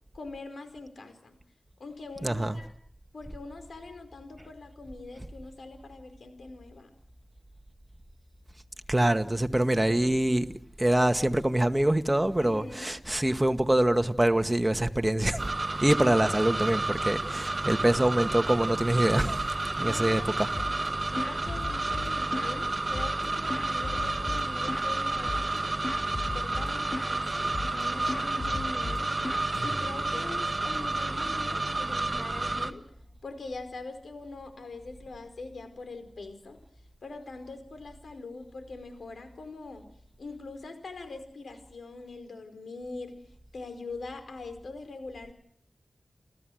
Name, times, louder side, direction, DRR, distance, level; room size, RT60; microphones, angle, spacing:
voice 1, 0.1-1.4 1.8-2.7 3.1-6.9 12.4-12.9 16.0-16.2 19.8-20.3 20.7-26.0 26.3-29.1 29.6-32.8 33.2-36.6 37.0-39.9 40.2-43.2 43.5-45.3, left 3 dB, 75° left, 4.8 m, -42 dB
voice 2, 2.2-2.5 8.9-10.5 10.8-15.5 15.8-19.4 19.8-20.5, right 1 dB, 20° right, 2.0 m, -25 dB
sound 1, 15.4-32.7, right 2 dB, 40° right, 1.8 m, -30 dB
sound 2, 20.6-20.9 21.2-22.6 22.9-24.9 25.3-25.6 25.8-27.2 27.5-27.8 28.1-30.2, left 3 dB, 40° left, 2.3 m, -37 dB
30.0 x 15.0 x 7.9 m
cardioid pair, 45°, 0 cm